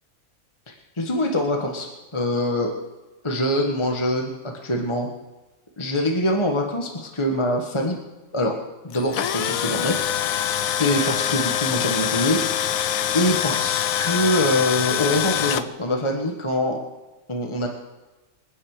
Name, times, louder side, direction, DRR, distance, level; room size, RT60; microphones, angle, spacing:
voice 1, 0.7-2.7 3.2-5.1 5.8-8.0 8.3-8.6 8.8-10.0 10.8-12.7 13.1-16.8 17.3-17.7, left 1 dB, 20° left, 1 dB, 1.5 m, -24 dB
Tools, 8.9-15.6, left 10 dB, 75° left, 1.1 m, -24 dB
27.0 x 9.6 x 5.0 m, 1.1 s
omnidirectional pair, 1.5 m